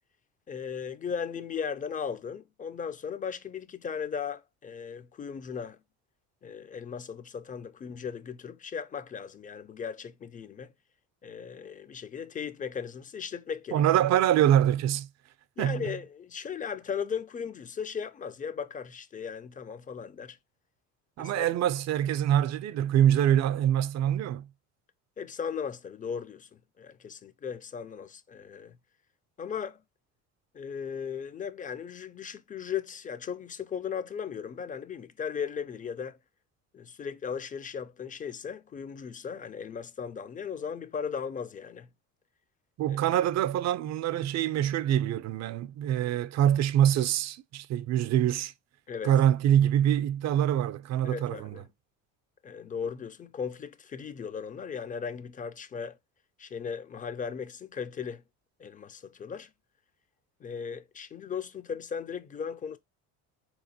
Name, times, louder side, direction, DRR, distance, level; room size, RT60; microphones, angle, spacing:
voice 1, 0.5-5.8 6.4-10.7 11.2-13.8 15.6-20.4 21.2-21.5 25.2-26.5 26.8-28.7 29.4-29.8 30.5-36.2 36.7-41.9 42.9-43.0 48.9-49.1 51.0-51.7 52.4-56.0 56.4-58.2 58.6-59.5 60.4-62.8, left 7 dB, 20° left, 0.4 m, -37 dB
voice 2, 13.7-15.1 15.6-15.9 21.2-24.5 42.8-48.5 49.0-51.6, right 11 dB, 45° right, 0.4 m, -25 dB
3.9 x 2.9 x 2.7 m
supercardioid pair, 90°, 38 cm